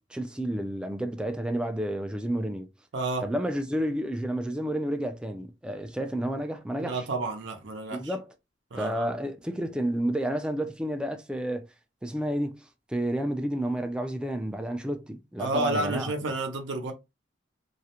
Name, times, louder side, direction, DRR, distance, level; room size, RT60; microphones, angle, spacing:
voice 1, 0.0-2.7 3.2-7.1 7.9-8.2 8.8-11.7 12.0-16.1, right 1 dB, 5° right, 0.3 m, -30 dB
voice 2, 2.9-3.3 6.8-8.1 8.7-9.1 15.4-16.9, right 2 dB, 75° right, 0.6 m, -30 dB
2.4 x 2.1 x 2.8 m
head